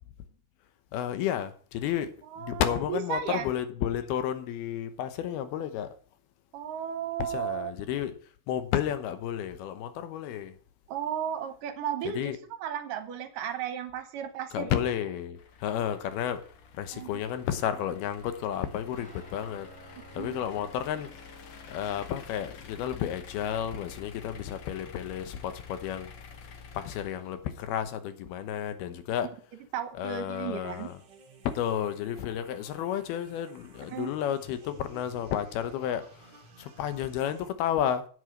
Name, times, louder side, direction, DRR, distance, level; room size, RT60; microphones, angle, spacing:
voice 1, 0.9-5.9 7.2-10.6 12.0-12.4 14.5-16.5 16.7-21.1 21.7-26.1 26.4-29.3 29.9-31.0 31.4-38.1, left 10 dB, 85° left, 3.0 m, -32 dB
voice 2, 2.3-3.5 6.5-7.7 10.9-12.4 12.6-14.7 16.9-17.2 20.2-20.4 29.7-30.9 33.9-34.1, right 9 dB, 70° right, 2.4 m, -34 dB
sound 1, 15.4-27.7, left 5 dB, 55° left, 1.5 m, -49 dB
Guitar, 18.9-27.8, equal, ahead, 4.1 m, -56 dB
sound 2, 30.6-37.5, right 3 dB, 45° right, 1.6 m, -54 dB
9.8 x 8.2 x 6.6 m
omnidirectional pair, 4.4 m